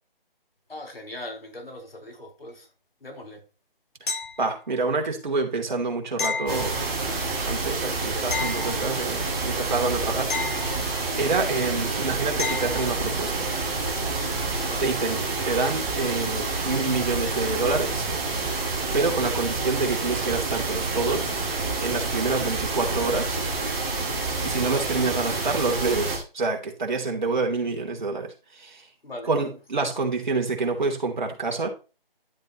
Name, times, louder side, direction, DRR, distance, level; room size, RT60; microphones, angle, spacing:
voice 1, 0.7-2.7 3.0-3.5 14.6-14.8 29.0-29.3, left 1 dB, 80° left, 4.3 m, -40 dB
sound 1, 4.1-4.8 6.2-7.3 8.3-9.3 10.3-11.3 12.4-13.0 15.8-15.9, left 5 dB, 60° left, 1.8 m, -32 dB
voice 2, 4.4-6.7 7.4-10.6 11.2-13.5 14.8-18.1 18.9-21.3 21.8-23.4 24.4-28.8 29.3-31.7, right 3 dB, 55° right, 3.1 m, -27 dB
sound 2, 6.5-26.2, right 3 dB, 10° right, 2.0 m, -28 dB
12.0 x 7.6 x 3.1 m
figure-of-eight pair, 165°, 29 cm